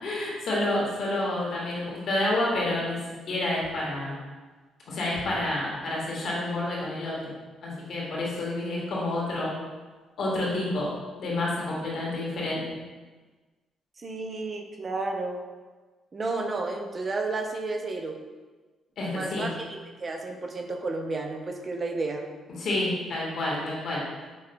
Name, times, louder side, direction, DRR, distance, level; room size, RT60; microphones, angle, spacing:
voice 1, 0.0-4.1 4.9-7.3 7.6-9.5 10.2-12.6 19.0-19.5 22.6-24.0, left 1 dB, 65° left, -5 dB, 1.5 m, -29 dB
voice 2, 14.0-15.4 16.1-18.2 19.1-22.2, right 3 dB, 35° right, 3 dB, 0.6 m, -32 dB
5.3 x 3.7 x 2.2 m, 1.3 s
cardioid pair, 90°, 0 cm